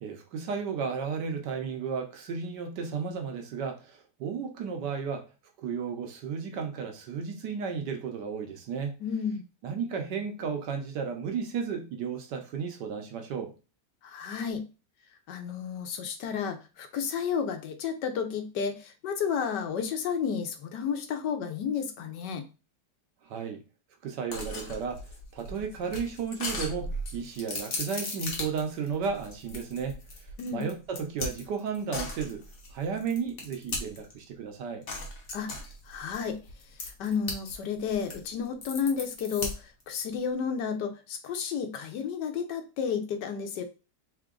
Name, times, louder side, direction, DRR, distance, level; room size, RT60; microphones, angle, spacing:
voice 1, 0.0-5.3 5.6-9.0 9.6-13.5 23.2-23.6 24.0-25.0 25.3-30.0 30.5-32.4 32.7-34.8, right 6 dB, 80° right, 1.4 m, -33 dB
voice 2, 9.0-9.4 14.0-14.6 15.3-22.4 30.4-30.7 35.3-35.5 35.9-36.4 36.8-43.6, left 6 dB, 80° left, 1.4 m, -32 dB
sound 1, 24.3-34.2 34.9-37.5 37.8-39.8, left 2 dB, 55° left, 1.5 m, -37 dB
3.8 x 3.5 x 3.7 m
omnidirectional pair, 1.8 m